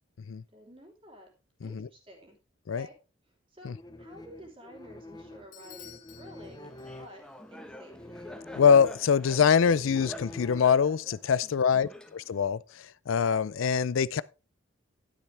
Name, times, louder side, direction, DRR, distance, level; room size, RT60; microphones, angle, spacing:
voice 1, 0.5-1.3 1.6-2.4 2.7-2.9 3.3-3.7 4.0-8.1 11.4-12.0, equal, 25° right, 3.3 m, -51 dB
sound 1, 3.6-11.1, left 2 dB, 20° left, 0.8 m, -47 dB
Bell / Doorbell, 5.5-7.4, left 10 dB, 40° left, 2.2 m, -52 dB
Laughter, 6.6-12.5, equal, 5° left, 1.1 m, -47 dB
voice 2, 8.6-14.2, left 6 dB, 75° left, 0.4 m, -24 dB
11.5 x 9.8 x 3.3 m
head